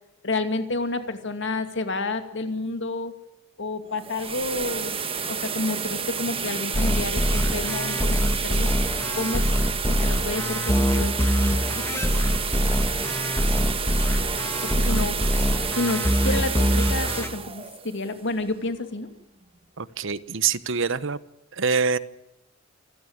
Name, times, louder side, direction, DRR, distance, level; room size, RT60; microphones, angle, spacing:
voice 1, 0.2-3.1 3.6-5.0 5.3-8.7 9.2-9.5 9.9-12.0 14.6-15.2 15.7-19.1, left 2 dB, 60° left, 8 dB, 2.4 m, -30 dB
sound 1, 3.8-18.8, right 6 dB, 25° right, 1.6 m, -30 dB
sound 2, 6.7-17.3, equal, 10° left, 1.5 m, -24 dB
voice 2, 19.8-21.2 21.5-22.0, right 5 dB, 65° right, 16 dB, 1.1 m, -25 dB
27.0 x 16.0 x 8.8 m, 0.87 s
head